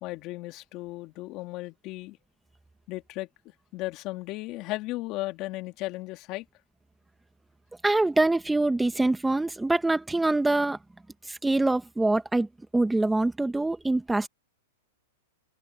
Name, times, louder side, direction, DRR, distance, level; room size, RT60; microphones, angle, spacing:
voice 1, 0.0-2.2 2.9-3.3 3.7-6.4, left 19 dB, 40° left, 2.6 m, -35 dB
voice 2, 7.8-10.8 11.3-12.5 12.7-14.3, right 2 dB, 5° right, 1.5 m, -24 dB
hypercardioid pair, 125°, 0 cm